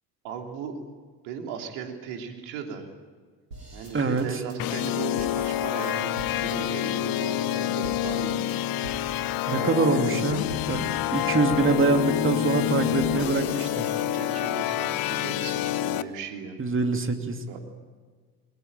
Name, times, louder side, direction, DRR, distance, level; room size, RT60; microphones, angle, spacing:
voice 1, 0.2-0.9 1.2-2.9 3.7-8.9 9.5-10.3 13.1-13.2 13.7-16.6 17.5-17.6, right 6 dB, 65° right, 4 dB, 3.2 m, -37 dB
sound 1, 3.5-6.6 6.8-7.2 7.5-7.6 7.8-9.2 9.5-9.9 10.2-10.3 10.5-11.9 12.2-14.2, right 1 dB, 85° right, 4.3 m, -43 dB
voice 2, 3.9-4.4 9.5-10.4 10.7-13.9 16.6-17.4, right 3 dB, 25° right, 6 dB, 2.7 m, -25 dB
sound 2, 4.6-16.0, left 13 dB, 50° left, 1.0 m, -27 dB
21.0 x 20.5 x 9.0 m, 1.5 s
figure-of-eight pair, 55°, 46 cm